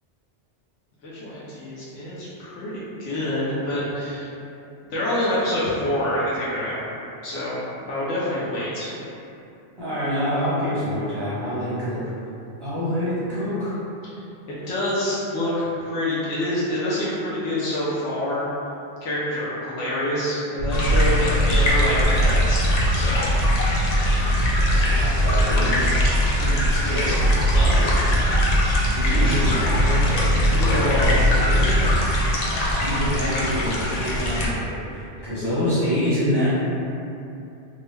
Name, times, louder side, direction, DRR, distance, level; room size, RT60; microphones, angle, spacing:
voice 1, 1.0-4.3 4.9-6.8 7.2-7.6 7.9-8.9 14.1-14.2 14.5-18.4 19.0-23.3 26.9-27.2 27.5-28.2 29.1-31.9, left 1 dB, 80° left, -8 dB, 1.0 m, -27 dB
voice 2, 9.8-12.0 12.6-13.7 24.2-25.8 26.4-27.2 28.9-29.5 32.7-36.5, equal, 25° right, -13 dB, 0.6 m, -26 dB
sound 1, 20.6-31.9, equal, 85° right, 0.9 m, -22 dB
sound 2, 20.7-34.5, equal, 65° left, 0.4 m, -24 dB
2.9 x 2.2 x 3.1 m, 2.7 s
omnidirectional pair, 1.2 m